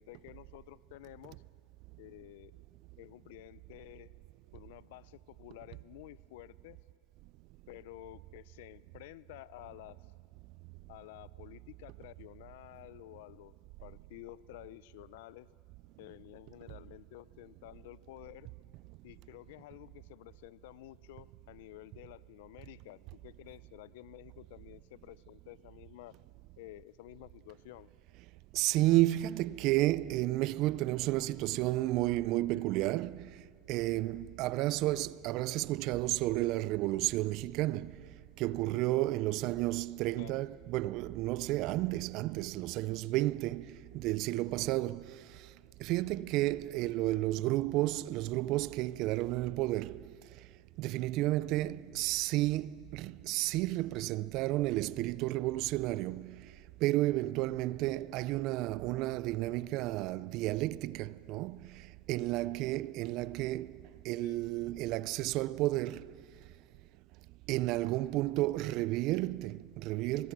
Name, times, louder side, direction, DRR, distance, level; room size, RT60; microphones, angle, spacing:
voice 1, 0.0-1.4 2.0-2.5 3.0-4.1 4.5-6.8 7.7-10.0 10.9-13.5 13.8-15.5 16.0-18.5 19.0-26.1 26.6-27.9 40.2-40.4 64.2-64.4, left 16 dB, 75° left, 0.5 m, -51 dB
voice 2, 28.5-33.3 33.7-38.0 38.4-45.1 45.8-50.1 50.8-56.4 56.8-61.6 62.1-63.7 64.0-66.2 67.5-70.3, right 17 dB, 55° right, 0.4 m, -32 dB
25.0 x 20.0 x 6.0 m
supercardioid pair, 115°, 0 cm